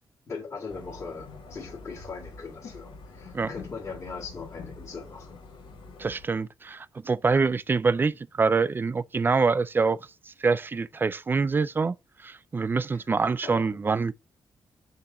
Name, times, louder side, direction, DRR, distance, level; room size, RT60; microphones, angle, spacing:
voice 1, 0.3-5.4 12.9-13.1 13.4-14.0, left 4 dB, 35° left, 1.9 m, -40 dB
sound 1, 0.7-6.3, left 4 dB, 85° left, 2.0 m, -45 dB
voice 2, 6.0-10.0 10.3-12.0 12.2-14.1, right 4 dB, 25° right, 0.3 m, -25 dB
6.7 x 2.8 x 5.3 m
wide cardioid pair, 125°, 8 cm